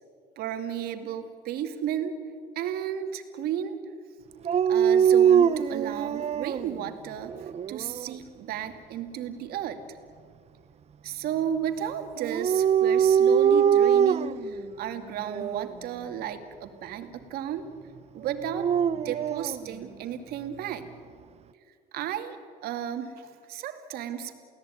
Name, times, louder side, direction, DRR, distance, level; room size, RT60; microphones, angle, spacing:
voice 1, 0.4-2.2 2.6-3.8 4.7-10.0 11.0-17.7 18.1-18.7 19.0-20.9 21.9-24.3, right 9 dB, 65° right, 7 dB, 2.5 m, -33 dB
Dog, 4.4-6.7 7.3-8.0 12.2-14.5 15.3-15.7 18.3-19.6, right 8 dB, 40° right, 0.7 m, -22 dB
29.0 x 17.5 x 9.3 m, 2.2 s
supercardioid pair, 85°, 17 cm